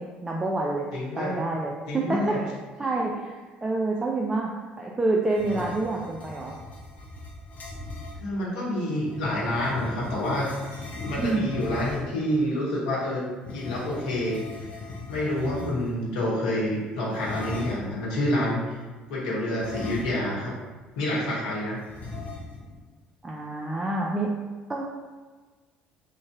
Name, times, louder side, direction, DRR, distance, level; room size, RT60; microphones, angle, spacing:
voice 1, 0.0-0.9 1.2-2.5 2.8-3.3 3.6-4.5 4.8-6.5 11.2-11.6 15.6-15.9 23.2-24.3 24.7-24.8, right 2 dB, 15° right, -2 dB, 0.4 m, -27 dB
voice 2, 0.9-1.3 1.9-2.4 8.2-10.5 11.0-13.2 13.5-14.7 15.1-18.8 19.1-20.6 21.0-21.8, left 1 dB, 65° left, -6 dB, 1.0 m, -28 dB
sound 1, 5.3-8.2 9.0-12.2 13.4-16.0 17.1-18.0 19.6-20.5 20.8-20.9 21.9-22.8, left 2 dB, 35° left, 0.7 m, -38 dB
3.1 x 2.6 x 3.4 m, 1.4 s
figure-of-eight pair, 55°, 5 cm